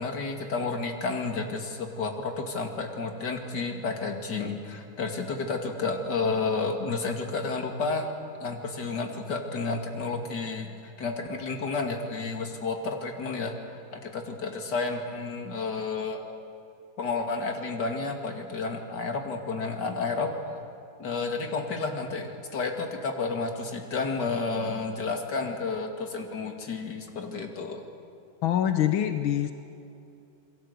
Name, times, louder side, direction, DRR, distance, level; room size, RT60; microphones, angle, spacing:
voice 1, 0.0-8.1 8.4-16.2 17.0-20.6 21.0-27.8, left 4 dB, 55° left, 4 dB, 2.9 m, -31 dB
voice 2, 28.4-29.5, left 10 dB, 90° left, 9 dB, 1.8 m, -24 dB
28.5 x 22.0 x 8.2 m, 2.6 s
omnidirectional pair, 2.2 m